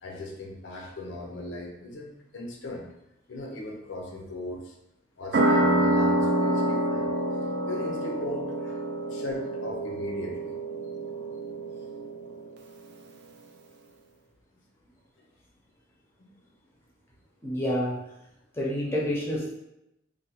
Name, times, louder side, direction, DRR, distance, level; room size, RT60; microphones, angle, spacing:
voice 1, 0.0-2.8 3.3-4.8 5.2-7.1 7.7-8.8 9.1-10.6 16.2-16.3, left 1 dB, 80° left, 0 dB, 0.6 m, -38 dB
sound 1, 5.3-12.5, right 1 dB, 60° right, 0.4 m, -27 dB
voice 2, 17.4-18.0 18.5-19.5, equal, 15° left, -4 dB, 0.6 m, -28 dB
3.2 x 2.2 x 2.9 m, 0.87 s
head